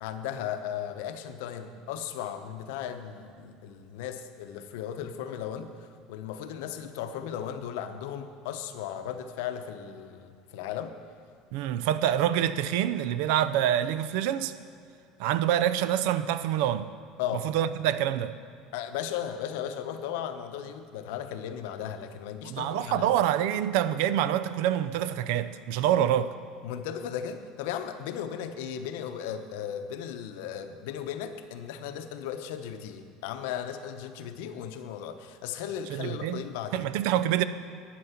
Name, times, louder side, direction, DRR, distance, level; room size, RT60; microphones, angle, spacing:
voice 1, 0.0-10.9 17.2-17.5 18.7-23.1 25.9-26.1 26.6-36.9, left 9 dB, 80° left, 8 dB, 0.8 m, -36 dB
voice 2, 11.5-14.5 15.2-16.9 17.4-18.4 22.4-26.3 35.9-36.4 36.7-37.4, right 11 dB, 70° right, 13 dB, 0.5 m, -26 dB
11.5 x 8.7 x 5.8 m, 2.4 s
cardioid pair, 145°, 0 cm